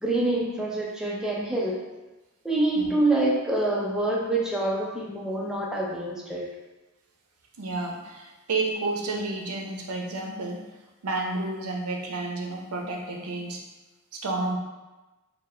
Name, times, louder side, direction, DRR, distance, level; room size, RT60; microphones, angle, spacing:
voice 1, 0.0-1.8 2.4-6.5, right 2 dB, 5° right, -4 dB, 0.4 m, -26 dB
voice 2, 7.6-10.6 11.0-13.6 14.1-14.6, right 2 dB, 70° right, 1 dB, 0.6 m, -30 dB
4.6 x 2.1 x 3.2 m, 1.1 s
head